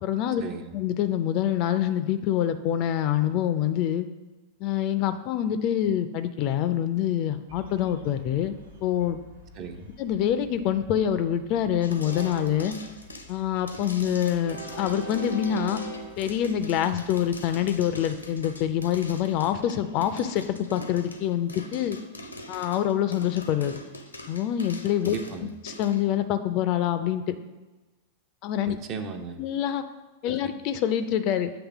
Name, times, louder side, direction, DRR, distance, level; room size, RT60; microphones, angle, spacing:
voice 1, 0.0-0.4 0.7-4.1 4.6-9.2 10.0-12.8 13.3-15.8 16.2-22.0 22.5-23.8 24.3-25.1 25.6-27.4 28.4-28.8 29.4-29.8 30.2-31.5, left 10 dB, 40° left, 10 dB, 0.4 m, -26 dB
Train, 7.5-20.5, right 1 dB, 75° right, 1.2 m, -44 dB
voice 2, 9.5-9.9 25.0-25.5 28.6-29.4 30.2-30.5, right 5 dB, 40° right, 6 dB, 0.7 m, -36 dB
sound 1, 11.8-26.0, left 1 dB, 80° left, 0.7 m, -43 dB
7.9 x 3.3 x 6.0 m, 1.2 s
figure-of-eight pair, 90°, 0 cm